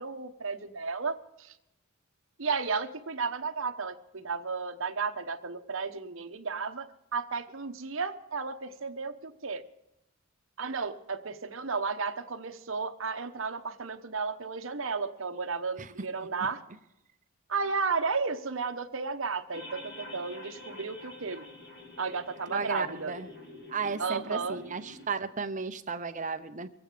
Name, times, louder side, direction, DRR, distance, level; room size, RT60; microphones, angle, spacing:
voice 1, 0.0-1.5 2.4-9.6 10.6-16.6 17.5-21.4 22.0-23.1 24.0-24.6, right 4 dB, 65° right, 6 dB, 1.0 m, -33 dB
sound 1, 19.5-25.1, left 2 dB, 50° left, 2.8 m, -47 dB
voice 2, 22.5-23.3 23.7-26.7, right 5 dB, 35° right, 10 dB, 0.7 m, -34 dB
23.0 x 8.6 x 5.0 m, 0.87 s
head